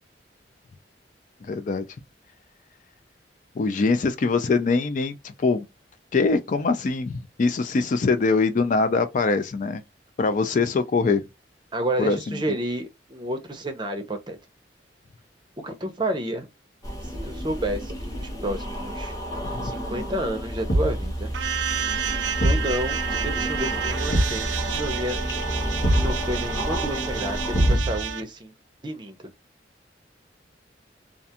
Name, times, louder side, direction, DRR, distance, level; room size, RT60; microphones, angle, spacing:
voice 1, 1.5-1.8 3.6-5.6 6.1-9.8 10.2-11.2 12.0-12.6 19.4-19.7, left 4 dB, 45° left, 0.4 m, -23 dB
voice 2, 11.7-14.4 15.6-16.5 17.0-19.2 19.6-21.3 22.4-25.2 25.9-28.5 28.8-29.3, right 1 dB, 25° right, 0.6 m, -30 dB
sound 1, 16.8-27.8, equal, 20° left, 0.9 m, -31 dB
Thump thud, 20.7-21.1 22.4-22.7 24.1-24.4 25.8-26.2 27.5-28.1, right 1 dB, 90° left, 1.1 m, -22 dB
sound 2, 21.3-28.2, right 8 dB, 80° right, 0.4 m, -30 dB
2.4 x 2.3 x 2.7 m
head